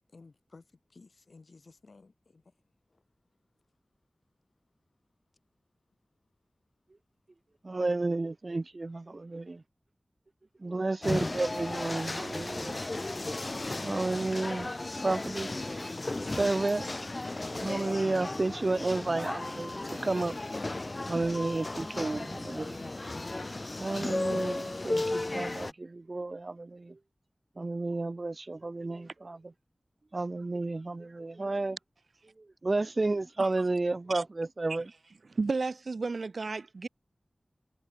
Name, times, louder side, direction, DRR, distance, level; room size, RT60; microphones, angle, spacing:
voice 1, 0.1-2.5 2.9-3.0, left 3 dB, 75° left, 4.5 m, -56 dB
voice 2, 7.6-9.6 10.6-12.8 13.8-14.7 15.0-15.5 16.4-16.9 17.5-20.4 21.1-22.9 23.8-27.0 27.6-29.4 30.1-31.8 32.6-34.9, right 2 dB, 55° right, 0.3 m, -31 dB
sound 1, 11.0-25.7, left 2 dB, 45° left, 2.0 m, -35 dB
voice 3, 35.3-36.9, right 3 dB, 80° right, 1.8 m, -32 dB
cardioid pair, 45°, 0 cm